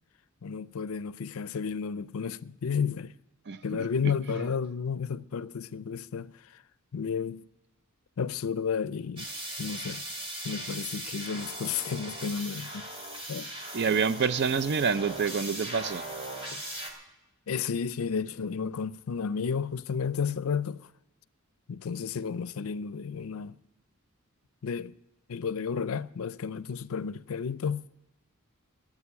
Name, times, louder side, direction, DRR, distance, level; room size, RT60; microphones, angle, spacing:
voice 1, 0.4-3.1 3.6-6.3 6.9-7.5 8.2-9.3 9.6-10.0 10.4-12.8 13.3-13.5 16.5-16.6 17.5-20.9 21.7-23.6 24.6-24.9 25.3-27.8, left 6 dB, 70° left, 0.5 m, -32 dB
voice 2, 3.5-4.4 13.7-16.1, right 6 dB, 50° right, 0.5 m, -28 dB
sound 1, 9.2-16.9, right 1 dB, 25° right, 2.5 m, -39 dB
13.0 x 8.7 x 8.5 m
head